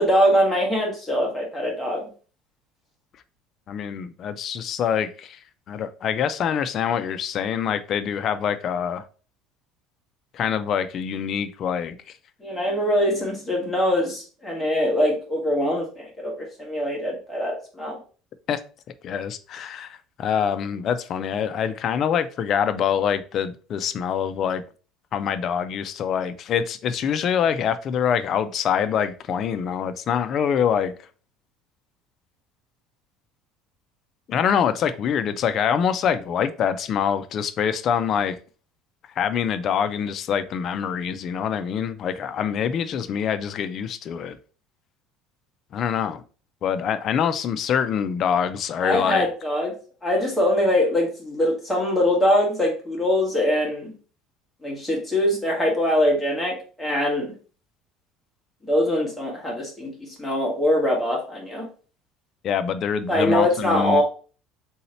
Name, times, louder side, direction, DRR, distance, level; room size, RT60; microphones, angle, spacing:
voice 1, 0.0-2.0 12.4-18.0 48.8-49.7 50.0-53.9 54.6-57.3 58.6-61.6 63.1-64.0, left 1 dB, ahead, -3 dB, 1.2 m, -23 dB
voice 2, 3.7-5.4 5.7-9.0 10.3-12.0 18.5-18.6 19.0-24.6 25.1-30.9 34.3-38.4 39.2-44.4 45.7-46.2 46.6-49.3 62.4-64.0, left 8 dB, 35° left, 10 dB, 0.4 m, -25 dB
3.9 x 2.8 x 4.2 m, 0.38 s
cardioid pair, 170°, 0 cm